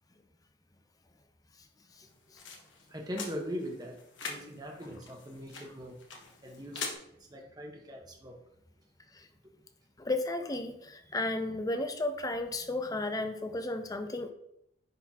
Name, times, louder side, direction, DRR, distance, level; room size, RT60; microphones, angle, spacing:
sound 1, 1.9-6.9, left 4 dB, 85° left, 1.2 m, -44 dB
voice 1, 2.9-5.9 6.4-6.9 7.3-8.3, equal, 20° right, 1 dB, 1.1 m, -40 dB
voice 2, 10.0-14.3, left 2 dB, 20° left, 7 dB, 0.5 m, -33 dB
10.0 x 4.0 x 2.9 m, 0.76 s
head